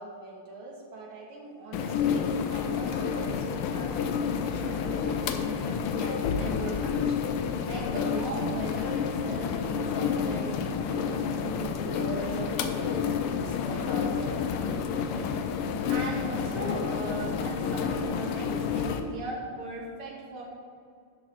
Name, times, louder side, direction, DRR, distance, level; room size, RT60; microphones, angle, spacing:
voice 1, 0.0-20.4, right 2 dB, 75° right, -3 dB, 2.3 m, -39 dB
sound 1, 1.7-19.0, left 7 dB, 90° left, 1.5 m, -29 dB
10.5 x 4.5 x 4.3 m, 2.4 s
omnidirectional pair, 2.4 m